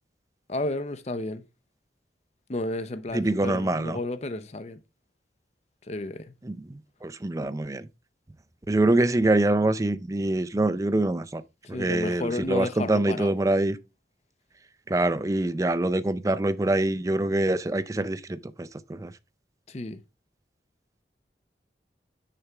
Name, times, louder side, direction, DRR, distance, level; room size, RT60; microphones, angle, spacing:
voice 1, 0.5-1.4 2.5-4.8 5.9-6.3 11.6-13.3 19.7-20.0, left 2 dB, 35° left, 0.6 m, -32 dB
voice 2, 3.1-4.0 6.4-7.9 8.7-11.4 11.7-13.8 14.9-19.1, right 2 dB, 20° right, 0.4 m, -25 dB
6.6 x 6.0 x 3.4 m
head